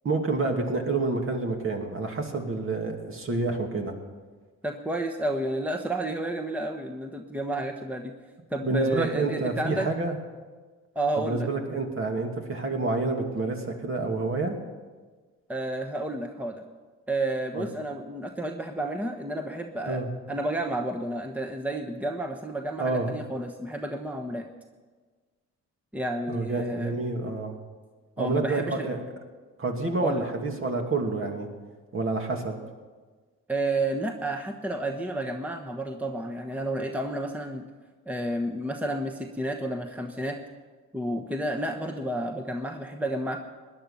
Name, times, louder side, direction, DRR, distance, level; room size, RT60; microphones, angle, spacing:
voice 1, 0.0-3.9 8.6-10.2 11.2-14.5 17.5-17.6 19.8-20.1 22.8-23.1 26.3-27.6 28.2-29.0 29.6-31.5 31.9-32.6, right 3 dB, 45° right, 3 dB, 2.5 m, -28 dB
voice 2, 4.6-8.1 8.5-9.9 10.9-11.5 15.5-16.6 17.1-20.0 20.3-24.5 25.9-26.9 28.2-28.9 30.0-30.2 33.5-37.6 38.1-40.4 40.9-43.4, right 1 dB, 5° right, 4 dB, 1.1 m, -31 dB
18.0 x 11.0 x 5.7 m, 1.4 s
cardioid pair, 90°, 30 cm